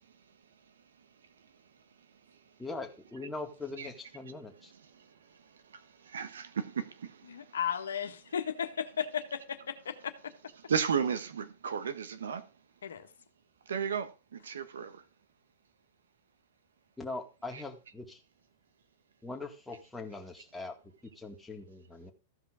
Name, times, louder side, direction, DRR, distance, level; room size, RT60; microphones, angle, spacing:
voice 1, 2.6-4.7 17.0-18.2 19.2-20.7 21.2-22.1, left 3 dB, 5° left, 2.1 m, -41 dB
voice 2, 5.7-7.5 10.7-12.4 13.7-15.0 17.5-17.6, right 7 dB, 85° right, 1.4 m, -34 dB
voice 3, 7.3-10.3 12.8-13.1, left 8 dB, 85° left, 1.4 m, -35 dB
14.5 x 5.2 x 5.0 m
hypercardioid pair, 115°, 0 cm